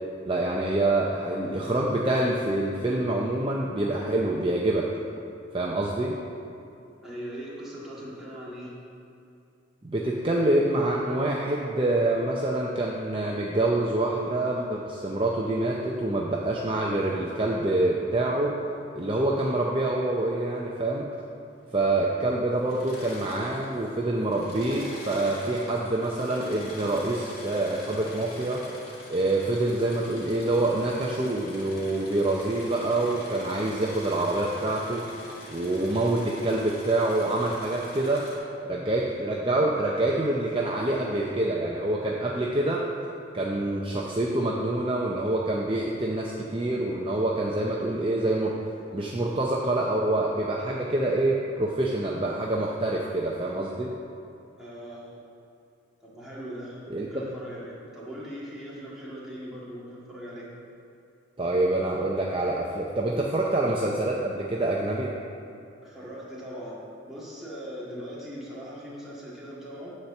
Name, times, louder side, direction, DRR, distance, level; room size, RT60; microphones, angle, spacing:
voice 1, 0.3-4.9 5.5-6.2 9.8-18.6 19.0-21.1 21.7-28.7 29.1-35.0 35.5-38.3 38.7-42.9 43.3-48.6 48.9-54.0 56.9-57.3 61.4-65.1, right 2 dB, 25° right, -3 dB, 0.6 m, -26 dB
voice 2, 7.0-8.7 54.6-55.1 56.0-60.5 65.8-69.9, equal, ahead, -8 dB, 1.8 m, -40 dB
Engine / Mechanisms, 22.6-23.9 24.2-38.4, left 1 dB, 50° left, 2.2 m, -44 dB
9.8 x 4.4 x 7.1 m, 2.6 s
head